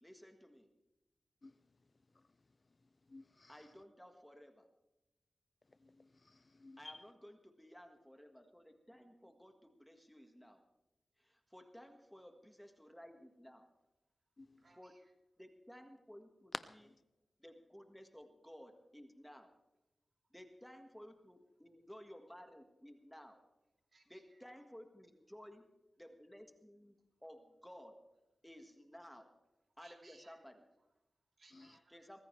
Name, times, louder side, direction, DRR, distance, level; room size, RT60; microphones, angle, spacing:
voice 1, 0.0-0.7 3.5-4.7 6.8-10.6 11.2-13.7 14.8-15.0 15.4-16.9 17.4-19.5 20.3-23.4 24.1-25.7 26.0-28.0 28.4-29.3 29.8-30.7 31.9-32.2, equal, 5° left, 5 dB, 1.6 m, -56 dB
voice 2, 3.1-3.7 5.8-7.0 14.4-14.6 16.8-17.0 31.6-31.7, left 2 dB, 40° left, 14 dB, 0.4 m, -57 dB
voice 3, 14.0-15.1 20.2-20.3 23.9-24.5 29.7-30.5 30.8-32.2, right 2 dB, 55° right, 1 dB, 3.1 m, -68 dB
23.5 x 14.5 x 3.3 m, 0.93 s
wide cardioid pair, 90°, 0 cm